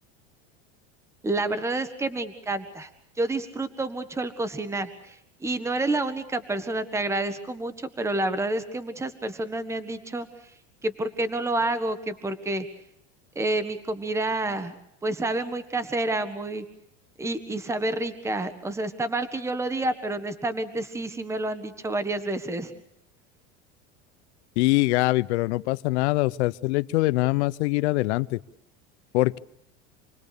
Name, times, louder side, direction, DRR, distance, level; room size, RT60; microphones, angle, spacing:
voice 1, 1.2-2.9 3.2-10.3 10.8-12.7 13.3-14.7 15.0-16.6 17.2-22.7, right 2 dB, 10° right, 11 dB, 1.6 m, -29 dB
voice 2, 24.6-28.4 29.1-29.4, left 21 dB, 80° left, 16 dB, 0.9 m, -23 dB
28.0 x 20.5 x 6.8 m, 0.77 s
supercardioid pair, 140°, 34 cm